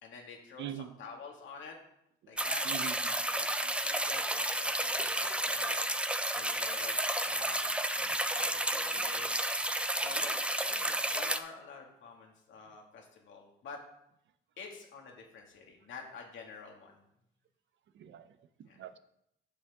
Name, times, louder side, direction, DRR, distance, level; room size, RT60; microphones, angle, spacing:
voice 1, 0.0-1.8 2.3-2.6 3.3-9.3 10.0-13.8 14.6-17.0 18.7-18.8, left 5 dB, 75° left, 1 dB, 2.2 m, -48 dB
voice 2, 0.6-1.0 2.2-2.3 2.6-3.1 17.9-19.0, right 10 dB, 70° right, 11 dB, 0.7 m, -43 dB
sound 1, 2.4-11.4, right 1 dB, 5° right, 0.6 m, -32 dB
9.2 x 7.2 x 3.6 m, 0.78 s
cardioid pair, 90°, 20 cm